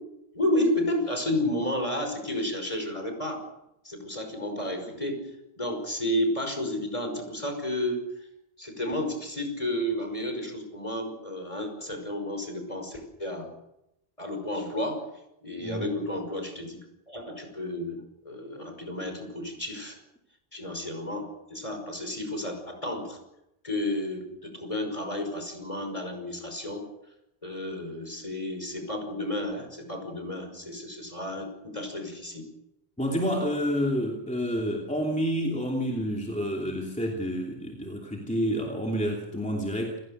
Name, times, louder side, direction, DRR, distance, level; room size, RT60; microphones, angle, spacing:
voice 1, 0.3-3.5 3.8-8.3 8.6-13.5 14.2-15.1 15.4-16.8 17.1-20.0 20.5-23.2 23.6-26.9 27.4-32.5, left 1 dB, 30° left, 5 dB, 5.7 m, -32 dB
voice 2, 33.0-40.0, equal, 5° left, -1 dB, 2.9 m, -29 dB
29.0 x 16.5 x 6.7 m, 0.86 s
omnidirectional pair, 1.1 m